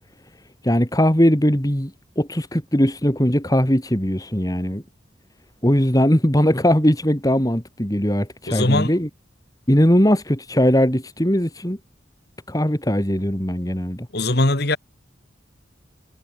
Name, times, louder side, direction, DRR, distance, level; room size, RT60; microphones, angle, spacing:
voice 1, 0.6-1.9 2.2-4.8 5.6-9.1 9.7-11.8 12.5-14.1, equal, 20° left, 3.0 m, -19 dB
voice 2, 8.5-8.9 14.1-14.8, left 2 dB, 55° left, 2.4 m, -20 dB
head